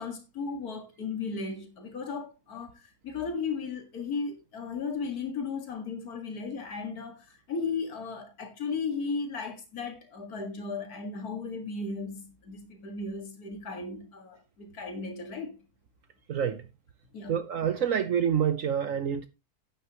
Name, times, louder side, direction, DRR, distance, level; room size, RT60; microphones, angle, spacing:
voice 1, 0.0-15.6 17.1-17.4, left 4 dB, 85° left, 2.4 m, -35 dB
voice 2, 16.3-16.6 17.3-19.3, right 8 dB, 65° right, 1.2 m, -27 dB
11.5 x 9.7 x 3.0 m
omnidirectional pair, 1.6 m